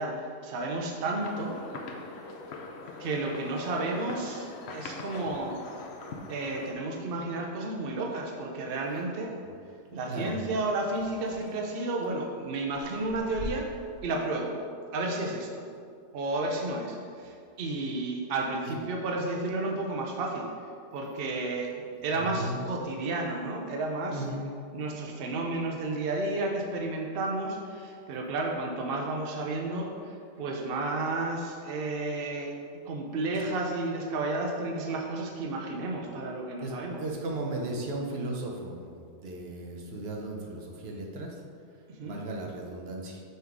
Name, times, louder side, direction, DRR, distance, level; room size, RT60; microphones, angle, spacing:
voice 1, 0.0-1.6 3.0-5.8 6.3-9.3 9.9-13.7 14.0-14.6 14.9-15.7 16.1-20.5 20.9-21.7 22.0-24.2 24.7-32.5 32.8-37.0 41.9-42.2, right 2 dB, 75° right, 0 dB, 0.5 m, -32 dB
sound 1, 1.2-6.7, left 3 dB, 70° left, 0.6 m, -42 dB
voice 2, 10.1-10.4 18.7-18.8 22.1-22.6 24.1-24.4 36.6-36.7 37.0-38.9 39.2-41.4 42.0-43.2, right 2 dB, 50° right, 0 dB, 0.8 m, -35 dB
sound 2, 10.9-12.0 12.6-14.0, equal, 90° left, 1.6 m, -42 dB
5.5 x 3.8 x 4.5 m, 2.3 s
omnidirectional pair, 1.7 m